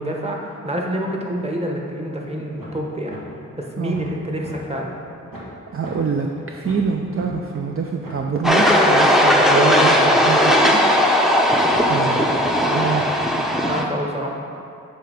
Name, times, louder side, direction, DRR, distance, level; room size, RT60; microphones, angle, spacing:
voice 1, 0.0-3.2 3.6-4.9 12.2-14.4, equal, 20° right, 0 dB, 1.0 m, -28 dB
sound 1, 2.6-2.8 3.1-3.2 3.6-4.5 4.9-5.0 5.3-5.5 5.8-5.9 6.3-7.3 7.7-7.8 8.0-8.2 8.5-8.7, right 1 dB, 85° right, 1.4 m, -38 dB
voice 2, 3.8-4.1 5.7-10.8 11.9-13.1, right 5 dB, 40° right, 2 dB, 0.5 m, -25 dB
sound 2, 8.4-13.8, equal, ahead, 0.6 m, -17 dB
7.4 x 3.4 x 4.9 m, 2.4 s
cardioid pair, 50°, 33 cm